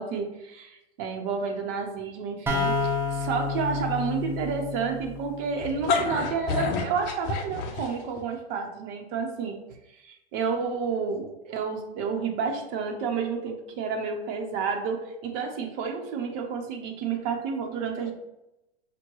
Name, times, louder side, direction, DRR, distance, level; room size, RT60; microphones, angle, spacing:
voice 1, 0.0-9.6 10.0-18.1, right 5 dB, 45° right, 2 dB, 0.9 m, -30 dB
sound 1, 2.5-6.1, left 3 dB, 5° right, 0.6 m, -30 dB
sound 2, 5.6-8.2, left 4 dB, 35° left, 0.6 m, -28 dB
5.7 x 2.2 x 3.0 m, 0.89 s
hypercardioid pair, 110°, 33 cm